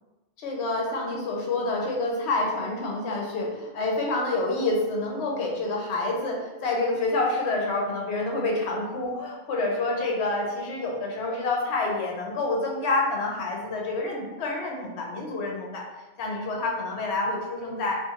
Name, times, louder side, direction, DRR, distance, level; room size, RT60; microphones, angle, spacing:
voice 1, 0.4-15.8 16.2-18.0, left 2 dB, 70° left, -1 dB, 0.9 m, -28 dB
2.6 x 2.4 x 2.7 m, 1.1 s
omnidirectional pair, 1.2 m